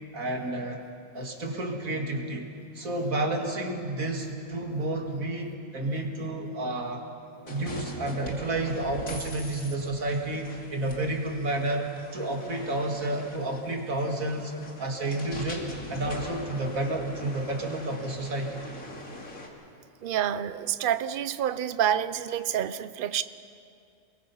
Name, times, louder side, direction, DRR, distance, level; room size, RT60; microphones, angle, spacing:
voice 1, 0.1-0.8 1.1-2.5 2.7-7.0 7.4-14.5 14.8-18.6, right 2 dB, 80° right, 1 dB, 2.8 m, -30 dB
sound 1, 7.5-19.5, left 2 dB, 85° left, 2.9 m, -42 dB
voice 2, 20.0-23.2, right 10 dB, 50° right, 13 dB, 0.7 m, -28 dB
29.0 x 22.0 x 5.6 m, 2.5 s
omnidirectional pair, 1.4 m